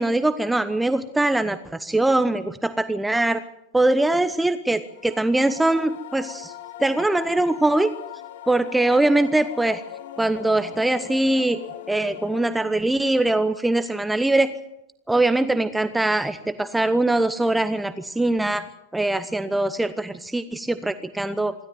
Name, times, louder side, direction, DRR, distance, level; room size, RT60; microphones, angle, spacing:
voice 1, 0.0-3.4 3.7-6.5 6.8-7.9 8.5-9.8 10.2-11.6 11.9-14.5 15.1-18.6 18.9-21.5, right 2 dB, 5° right, 12 dB, 1.0 m, -22 dB
sound 1, 4.9-13.0, left 12 dB, 55° left, 1.2 m, -40 dB
26.0 x 13.0 x 9.3 m, 0.83 s
figure-of-eight pair, 90°, 0 cm